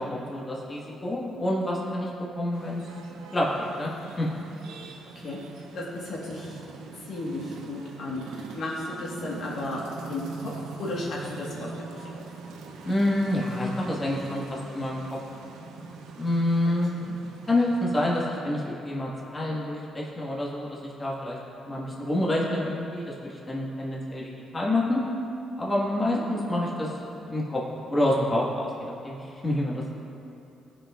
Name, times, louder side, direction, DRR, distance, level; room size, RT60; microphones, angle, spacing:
voice 1, 0.0-2.1 2.3-2.8 3.3-3.9 4.2-4.3 12.8-15.0 16.2-16.9 17.5-21.4 21.7-25.0 25.6-26.9 27.2-27.6 27.9-28.7 29.0-30.0, left 1 dB, 25° left, -5 dB, 1.5 m, -27 dB
sound 1, 2.5-18.2, right 4 dB, 85° right, 0.6 m, -42 dB
voice 2, 5.7-6.6 7.1-9.8 10.1-10.5 10.8-12.2 17.0-17.1 26.0-26.2, left 2 dB, 65° left, -4 dB, 1.5 m, -34 dB
16.5 x 5.6 x 2.4 m, 2.8 s
cardioid pair, 90°, 0 cm